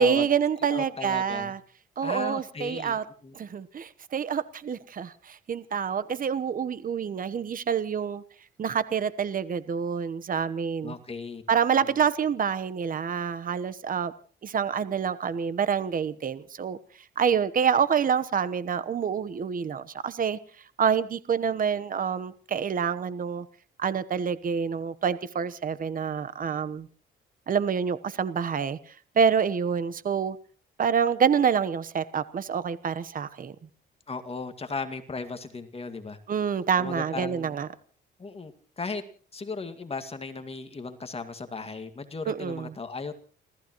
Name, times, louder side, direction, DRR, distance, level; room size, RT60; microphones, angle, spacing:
voice 1, 0.0-1.6 2.0-3.0 3.3-8.2 8.6-10.9 11.5-14.1 14.4-16.8 17.2-20.4 20.8-23.5 23.8-26.9 27.5-28.8 29.1-30.4 30.8-33.5 36.3-37.7 42.3-42.7, right 7 dB, 45° right, 14 dB, 1.1 m, -27 dB
voice 2, 0.7-1.5 2.0-3.4 10.8-11.4 11.8-11.9 34.1-36.2 36.8-37.6 38.2-39.0 39.3-43.1, left 4 dB, 30° left, 7 dB, 2.1 m, -36 dB
30.0 x 15.0 x 3.1 m, 0.42 s
cardioid pair, 90°, 20 cm